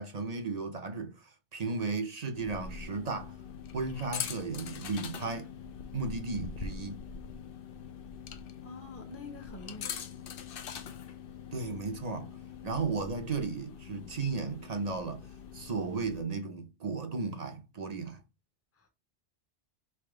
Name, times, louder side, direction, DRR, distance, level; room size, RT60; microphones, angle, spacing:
voice 1, 0.0-3.3 3.7-5.5 5.9-7.0 11.5-12.3 12.6-15.3 15.5-18.2, right 4 dB, 40° right, 0.7 m, -35 dB
sound 1, 2.3-16.2, left 7 dB, 60° left, 0.7 m, -43 dB
voice 2, 8.6-10.0 18.8-18.9, left 2 dB, 15° left, 0.7 m, -47 dB
3.6 x 2.9 x 4.7 m
omnidirectional pair, 1.1 m